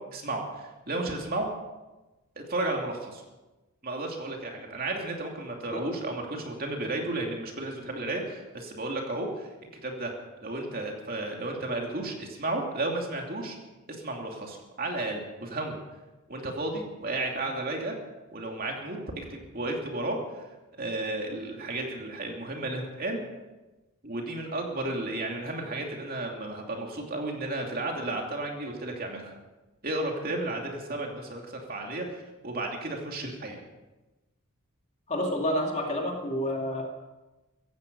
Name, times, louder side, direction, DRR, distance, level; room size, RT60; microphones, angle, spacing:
voice 1, 0.1-1.5 2.5-3.2 3.8-9.5 9.8-10.1 10.4-13.6 13.9-15.8 16.3-18.0 18.3-20.5 20.8-23.2 24.0-29.3 29.8-33.6, right 2 dB, 40° right, 1 dB, 2.7 m, -33 dB
voice 2, 35.1-36.8, equal, 30° left, 0 dB, 2.5 m, -29 dB
16.0 x 15.5 x 5.5 m, 1.1 s
head